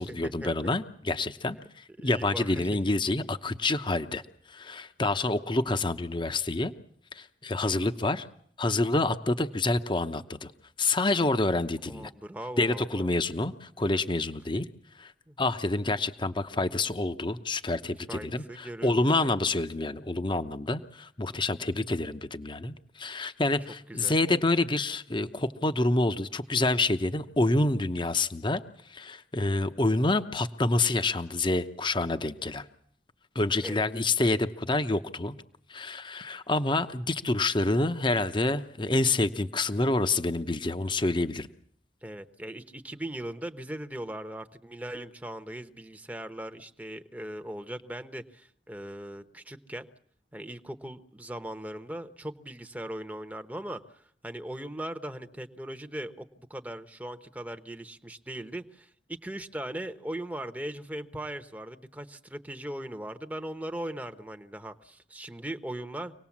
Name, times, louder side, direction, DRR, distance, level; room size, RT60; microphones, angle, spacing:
voice 1, 0.0-4.2 4.5-6.7 7.1-8.3 8.6-10.5 10.8-12.1 12.6-14.7 15.0-15.1 15.4-28.6 28.9-32.6 33.3-35.3 35.7-41.5, left 2 dB, 25° left, 10 dB, 0.9 m, -27 dB
voice 2, 2.0-2.7 11.9-13.1 15.3-15.4 18.1-19.2 23.9-24.1 33.6-33.8 42.0-49.9 50.3-66.1, right 1 dB, 10° right, 8 dB, 1.0 m, -39 dB
25.5 x 18.5 x 7.3 m, 0.63 s
head